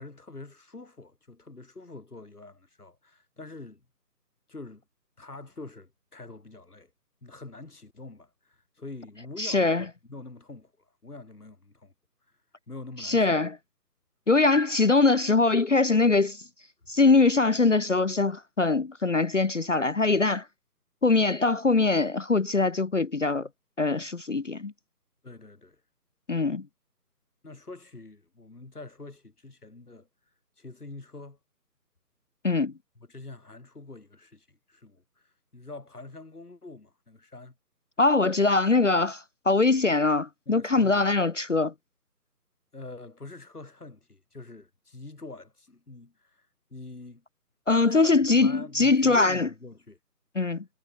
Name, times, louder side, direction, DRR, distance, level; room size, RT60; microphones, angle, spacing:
voice 1, 0.0-3.9 4.5-4.8 5.2-6.9 7.2-11.9 12.7-13.5 25.2-25.8 27.4-30.1 30.6-31.4 33.0-37.6 40.5-41.1 42.7-47.2 47.9-50.0, left 3 dB, 70° left, 4.4 m, -45 dB
voice 2, 9.4-9.8 13.0-13.6 14.3-16.4 16.9-20.4 21.0-23.5 23.8-24.7 26.3-26.6 32.4-32.7 38.0-41.7 47.7-49.5 50.4-50.6, left 3 dB, 50° left, 0.5 m, -22 dB
figure-of-eight pair, 155°, 48 cm